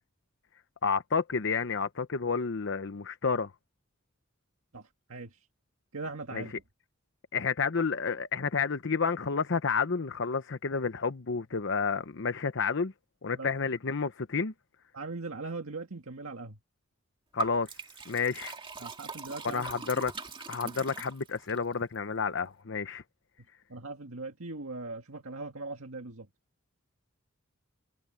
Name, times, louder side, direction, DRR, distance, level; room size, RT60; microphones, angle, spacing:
voice 1, 0.8-3.5 6.3-6.6 7.3-12.9 13.2-14.5 17.3-18.6 19.4-20.1 20.5-23.0, left 5 dB, 65° left, 0.8 m, -30 dB
voice 2, 4.7-5.4 5.9-6.5 13.3-13.5 14.9-16.6 18.8-19.7 20.6-20.7 23.7-26.3, right 3 dB, 90° right, 1.8 m, -40 dB
Liquid, 17.4-21.6, right 4 dB, 25° right, 2.1 m, -41 dB
head